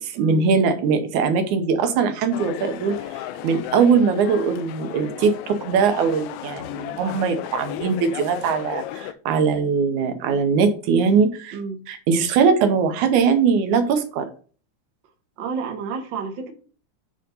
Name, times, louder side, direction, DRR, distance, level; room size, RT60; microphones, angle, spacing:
voice 1, 0.0-3.0 3.4-11.6 11.9-14.3, right 5 dB, 85° right, 8 dB, 2.3 m, -21 dB
sound 1, 2.3-9.1, left 13 dB, 80° left, 1.8 m, -34 dB
voice 2, 15.4-16.5, right 5 dB, 50° right, 3 dB, 1.4 m, -30 dB
8.9 x 3.5 x 3.9 m, 0.40 s
omnidirectional pair, 3.4 m